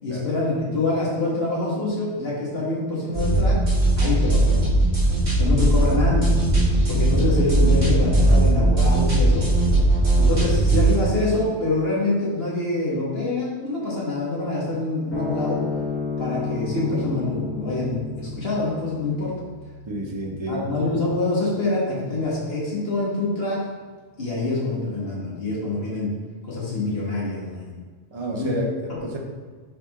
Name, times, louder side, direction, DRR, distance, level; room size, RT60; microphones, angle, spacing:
voice 1, 0.0-3.6 4.0-4.9 5.4-6.5 6.9-9.5 10.2-15.6 16.2-19.3 20.5-23.6 24.2-26.1 26.4-27.8 28.3-28.5 28.9-29.0, left 2 dB, 55° left, -6 dB, 2.1 m, -25 dB
sound 1, 3.1-11.0, right 2 dB, 60° right, 2.3 m, -19 dB
sound 2, 15.1-21.8, left 4 dB, 10° left, 1.7 m, -32 dB
voice 2, 19.9-20.7 28.1-29.2, right 1 dB, 25° right, -1 dB, 0.9 m, -30 dB
6.5 x 4.3 x 3.7 m, 1.5 s
omnidirectional pair, 1.2 m